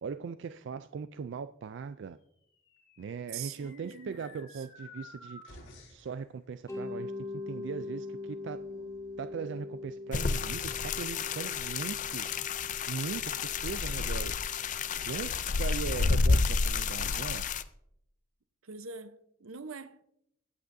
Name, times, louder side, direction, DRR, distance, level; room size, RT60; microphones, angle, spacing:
voice 1, 0.0-2.2 3.0-5.6 5.9-7.1 7.5-8.6 9.2-12.3 12.9-14.3 15.1-17.4, right 6 dB, 60° right, 0.3 m, -39 dB
sound 1, 2.5-6.1, left 2 dB, 60° left, 4.0 m, -52 dB
voice 2, 3.3-4.6 8.7-8.9 18.6-20.0, right 5 dB, 85° right, 0.8 m, -44 dB
Mallet percussion, 6.7-15.4, left 3 dB, 15° left, 2.3 m, -43 dB
sound 2, 10.1-17.6, left 4 dB, 40° left, 0.4 m, -30 dB
21.5 x 8.6 x 2.6 m
head